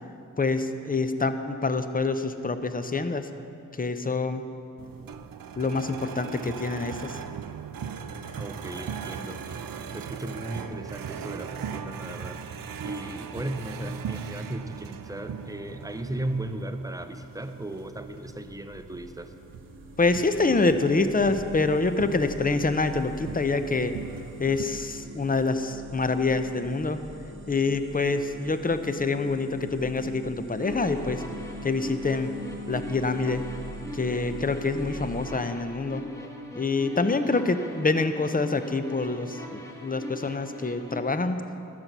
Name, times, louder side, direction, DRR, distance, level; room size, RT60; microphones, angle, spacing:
voice 1, 0.4-3.3 3.8-4.4 5.6-7.2 20.0-23.9 24.4-27.0 27.5-31.2 31.6-32.3 32.7-33.4 33.9-36.0 36.6-41.4, left 3 dB, 25° left, 9 dB, 0.6 m, -26 dB
sound 1, 4.8-24.6, right 7 dB, 85° right, 0.5 m, -39 dB
voice 2, 8.4-9.4 9.9-12.4 12.8-19.3, right 1 dB, 10° right, 8 dB, 0.6 m, -36 dB
sound 2, 18.7-35.3, right 1 dB, 35° right, 0.9 m, -43 dB
sound 3, 30.6-41.0, left 1 dB, 10° left, 1.5 m, -41 dB
12.5 x 6.7 x 6.0 m, 2.7 s
cardioid pair, 50°, 33 cm